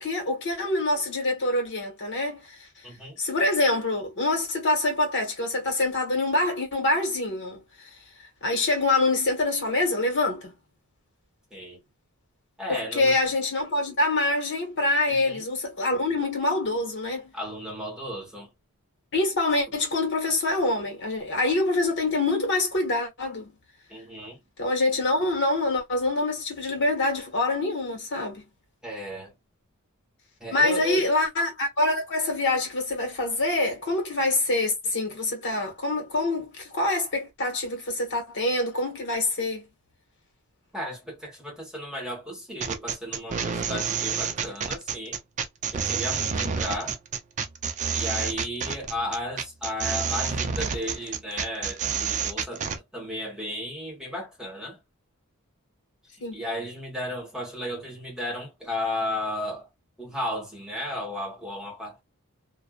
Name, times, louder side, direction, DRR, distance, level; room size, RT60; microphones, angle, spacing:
voice 1, 0.0-2.7 3.2-7.9 8.4-10.5 12.7-17.3 19.1-23.5 24.6-28.4 30.5-39.7 46.2-46.5 56.2-56.4, left 2 dB, 60° left, 1.3 m, -25 dB
voice 2, 2.8-3.2 11.5-11.8 12.6-13.2 15.1-15.4 17.3-18.5 23.9-24.4 28.8-29.3 30.4-31.1 40.7-45.2 45.7-47.0 47.9-54.8 56.3-59.7 60.0-62.0, left 1 dB, 5° right, 1.2 m, -34 dB
sound 1, 42.6-52.8, right 6 dB, 35° right, 0.4 m, -29 dB
2.5 x 2.1 x 2.3 m
head